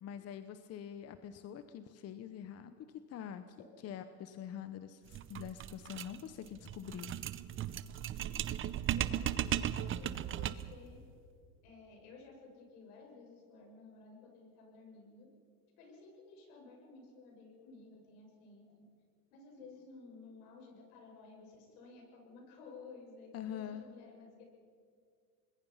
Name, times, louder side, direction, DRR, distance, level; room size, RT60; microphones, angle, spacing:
voice 1, 0.0-2.7 3.1-3.4 3.8-7.2 23.3-23.8, left 9 dB, 35° left, 10 dB, 1.0 m, -45 dB
sound 1, 5.1-10.8, right 10 dB, 25° right, 0.7 m, -36 dB
voice 2, 8.9-11.0 11.6-15.3 15.8-18.8 19.3-24.4, left 4 dB, 70° left, 1 dB, 6.8 m, -55 dB
25.5 x 21.0 x 5.7 m, 2.2 s
supercardioid pair, 120°, 46 cm